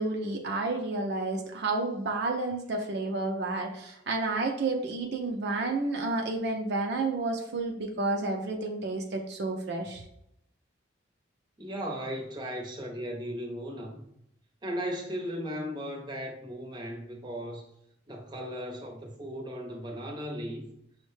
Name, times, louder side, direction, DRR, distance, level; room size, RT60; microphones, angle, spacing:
voice 1, 0.0-10.0, right 3 dB, 60° right, 0.5 m, -30 dB
voice 2, 11.6-14.0 14.6-17.7 18.1-20.7, equal, 25° right, 0.7 m, -36 dB
6.2 x 2.1 x 3.2 m
head